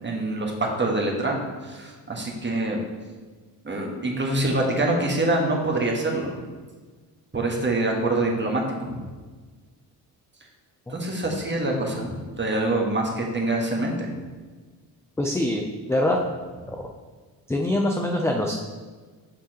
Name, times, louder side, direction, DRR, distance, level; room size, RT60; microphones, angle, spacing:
voice 1, 0.0-2.8 3.6-6.3 7.3-9.0 10.9-14.1, right 2 dB, 20° right, 0 dB, 1.5 m, -25 dB
voice 2, 15.2-16.2 16.7-16.8 17.5-18.6, left 1 dB, 5° left, 1 dB, 0.5 m, -24 dB
6.4 x 5.8 x 2.9 m, 1.4 s
hypercardioid pair, 50°, 49 cm